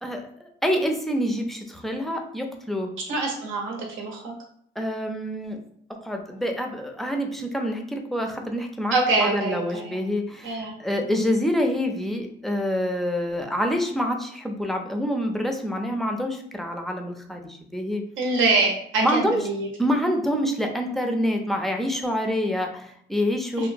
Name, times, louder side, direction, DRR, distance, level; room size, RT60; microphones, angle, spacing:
voice 1, 0.0-2.9 4.8-5.6 5.9-9.0 9.2-18.0 19.0-19.4 19.8-23.7, equal, ahead, 3 dB, 0.4 m, -26 dB
voice 2, 3.1-4.3 8.9-10.0 10.4-10.7 18.2-19.7 23.6-23.7, right 3 dB, 85° right, 1 dB, 0.8 m, -25 dB
2.9 x 2.1 x 2.5 m, 0.67 s
cardioid pair, 90°, 20 cm